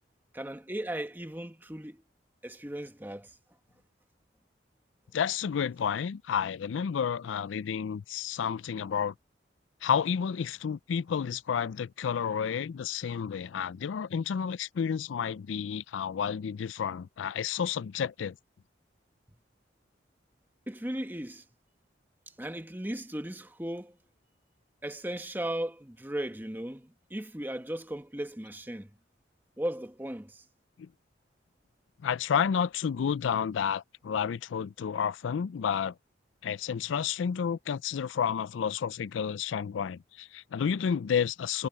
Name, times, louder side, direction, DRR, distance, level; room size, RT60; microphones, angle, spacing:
voice 1, 0.3-2.0 2.4-3.3 20.7-21.4 22.4-24.0 24.8-28.9 29.6-30.4, right 1 dB, 10° right, 1.2 m, -36 dB
voice 2, 5.1-9.1 9.8-18.4 30.8-30.9 32.0-35.9 36.4-41.7, left 7 dB, 90° left, 0.4 m, -30 dB
head